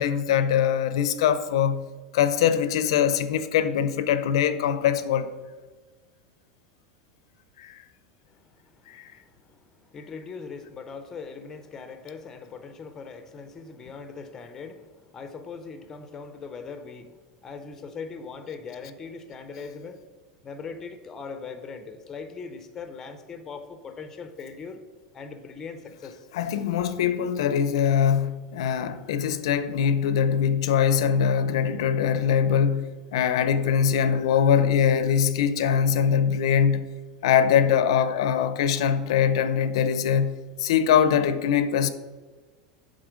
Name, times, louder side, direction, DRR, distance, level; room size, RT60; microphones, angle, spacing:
voice 1, 0.0-1.9 2.1-5.3 7.6-7.8 8.9-9.1 26.3-36.9 37.2-41.9, left 8 dB, 80° left, 0.5 m, -22 dB
voice 2, 8.3-20.0 20.4-24.8 25.1-26.3, left 5 dB, 15° left, 0.5 m, -40 dB
7.9 x 3.8 x 5.0 m
supercardioid pair, 175°, 3 cm